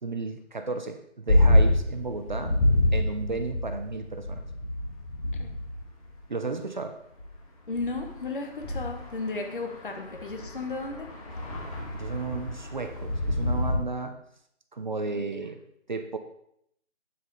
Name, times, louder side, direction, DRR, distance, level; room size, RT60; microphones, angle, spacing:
voice 1, 0.0-2.6 2.9-4.5 6.3-7.0 11.9-14.2 14.7-15.6 15.9-16.2, right 4 dB, 40° right, 7 dB, 0.7 m, -33 dB
sound 1, 1.3-6.2 7.2-7.3 7.8-13.7, left 1 dB, 30° left, 1.7 m, -27 dB
voice 2, 7.7-11.1 15.1-15.2, left 3 dB, 45° left, 4 dB, 1.4 m, -34 dB
8.7 x 7.7 x 4.0 m, 0.74 s
figure-of-eight pair, 165°, 36 cm